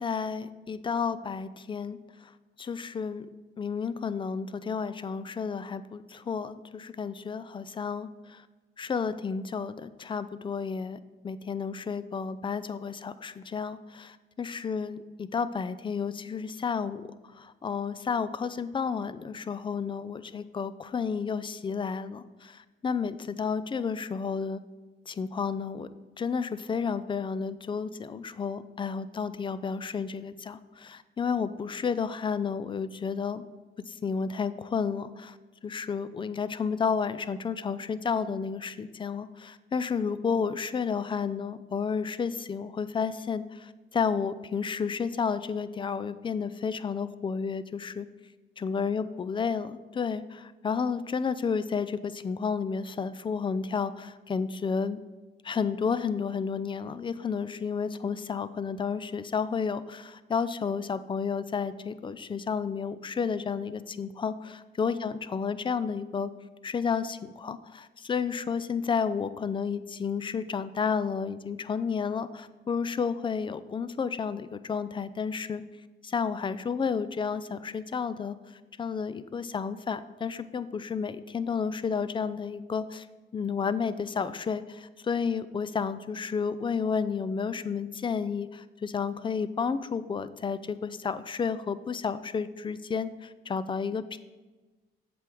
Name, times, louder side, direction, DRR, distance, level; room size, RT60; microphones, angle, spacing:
voice 1, 0.0-2.0 2.6-3.3 3.6-8.4 8.8-11.0 11.2-17.1 17.4-24.6 25.1-25.9 26.2-33.4 33.9-35.4 35.6-48.1 48.6-55.0 55.4-66.3 66.6-75.6 76.0-78.4 78.8-83.1 83.3-94.2, left 6 dB, 25° left, 14 dB, 0.4 m, -31 dB
7.6 x 3.5 x 6.0 m, 1.2 s
cardioid pair, 90°, 20 cm